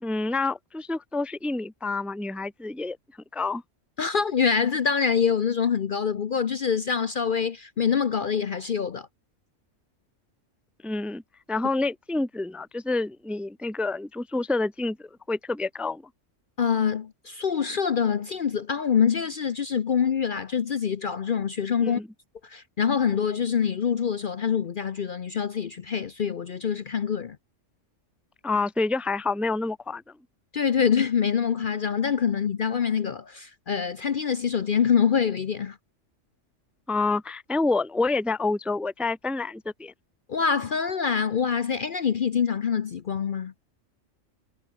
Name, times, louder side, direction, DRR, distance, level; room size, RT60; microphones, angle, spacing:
voice 1, 0.0-3.0 3.3-3.6 10.8-11.2 11.5-16.0 21.8-22.1 28.4-30.0 36.9-39.9, left 3 dB, ahead, 0.7 m, -28 dB
voice 2, 4.0-9.1 16.6-22.0 22.4-27.4 30.5-35.8 40.3-43.5, left 7 dB, 50° left, 0.8 m, -25 dB
omnidirectional pair, 1.3 m